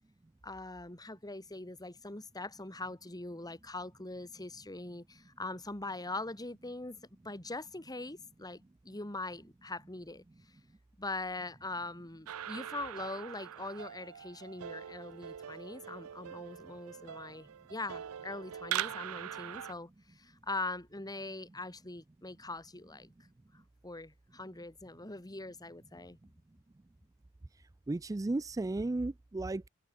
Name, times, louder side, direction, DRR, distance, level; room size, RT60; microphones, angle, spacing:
voice 1, 0.4-7.0 7.2-10.2 11.0-23.1 23.8-26.2, left 2 dB, 20° left, 2.6 m, -42 dB
sound 1, 12.3-19.7, right 10 dB, 75° right, 0.5 m, -42 dB
voice 2, 27.9-29.7, right 2 dB, 15° right, 0.4 m, -34 dB
open air
head